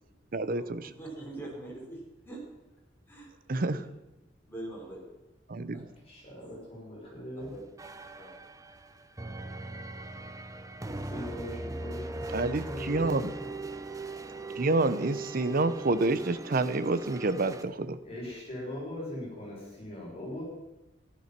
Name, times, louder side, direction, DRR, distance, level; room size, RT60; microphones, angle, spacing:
voice 1, 0.3-0.9 3.5-3.8 5.5-5.9 12.3-13.3 14.6-18.0, right 2 dB, 55° right, 13 dB, 0.8 m, -28 dB
voice 2, 1.0-2.0 2.2-2.4 3.1-3.9 4.5-5.0 5.7-5.8 7.4-7.6 8.2-8.4, right 2 dB, 15° left, -4 dB, 5.2 m, -43 dB
voice 3, 6.0-7.5 11.0-13.4 18.0-20.4, left 1 dB, 35° left, -4 dB, 6.6 m, -40 dB
sound 1, 7.4-17.6, right 2 dB, 20° right, 0.7 m, -40 dB
14.5 x 11.5 x 6.0 m, 1.0 s
head